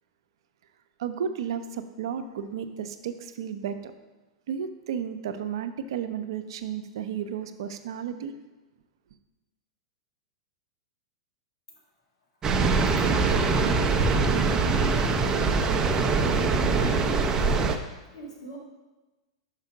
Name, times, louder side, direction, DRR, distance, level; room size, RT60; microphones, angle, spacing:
voice 1, 1.0-3.9 4.5-8.3, right 8 dB, 70° right, 9 dB, 0.5 m, -33 dB
sound 1, 12.4-17.8, right 4 dB, 25° right, 0.5 m, -23 dB
voice 2, 16.3-17.1 18.0-18.6, right 1 dB, 80° left, -2 dB, 2.1 m, -43 dB
5.7 x 5.3 x 4.8 m, 1.1 s
hypercardioid pair, 110°, 3 cm